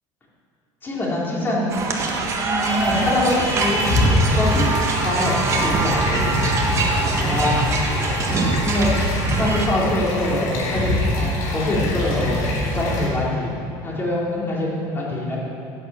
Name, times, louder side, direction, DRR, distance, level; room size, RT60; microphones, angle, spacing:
voice 1, 0.8-2.0 2.4-3.9 4.3-4.8 5.0-6.5 7.2-7.7 8.6-8.9 9.4-13.5 13.8-15.4, left 1 dB, 20° left, -5 dB, 3.1 m, -24 dB
sound 1, 1.7-9.7, right 3 dB, 30° right, 1.5 m, -23 dB
sound 2, 2.6-13.1, left 2 dB, 75° left, 3.1 m, -24 dB
11.0 x 8.2 x 7.4 m, 2.7 s
cardioid pair, 135°, 10 cm